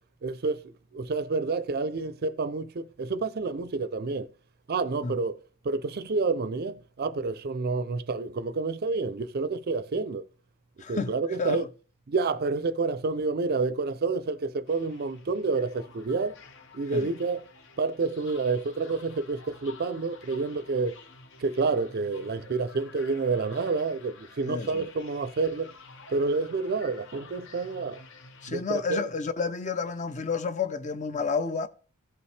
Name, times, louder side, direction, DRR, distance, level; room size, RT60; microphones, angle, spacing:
voice 1, 0.2-0.6 0.9-4.3 4.7-5.4 5.6-10.2 10.9-11.7 12.1-16.4 16.7-17.4 17.8-21.0 21.4-25.7 26.1-28.0 28.5-29.1, right 4 dB, 45° right, 0.5 m, -29 dB
voice 2, 10.8-11.7 16.9-17.1 24.4-24.9 28.4-31.7, left 5 dB, 35° left, 0.6 m, -30 dB
sound 1, 14.7-28.5, left 4 dB, 55° left, 0.9 m, -51 dB
16.0 x 5.5 x 3.3 m
head